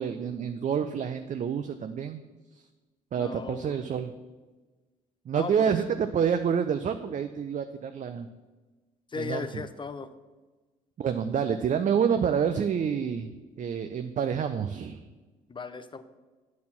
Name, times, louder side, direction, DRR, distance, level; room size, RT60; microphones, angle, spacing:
voice 1, 0.0-2.2 2.5-2.6 3.1-4.1 5.3-8.3 9.2-9.5 11.0-13.3 13.6-15.0, right 7 dB, 40° right, 9 dB, 0.5 m, -28 dB
voice 2, 3.2-3.7 5.3-5.7 9.1-10.1 15.5-16.0, left 5 dB, 25° left, 11 dB, 0.7 m, -36 dB
8.5 x 4.2 x 7.0 m, 1.2 s
hypercardioid pair, 55°, 20 cm